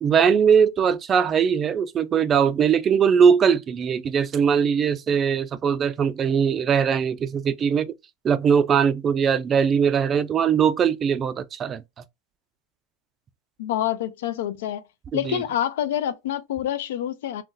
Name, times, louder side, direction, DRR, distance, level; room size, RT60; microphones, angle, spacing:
voice 1, 0.0-7.9 8.2-11.8 15.2-15.4, right 7 dB, 30° right, 0.3 m, -20 dB
voice 2, 13.6-14.8 15.1-17.4, left 11 dB, 80° left, 0.4 m, -27 dB
2.6 x 2.2 x 3.8 m
supercardioid pair, 125°, 0 cm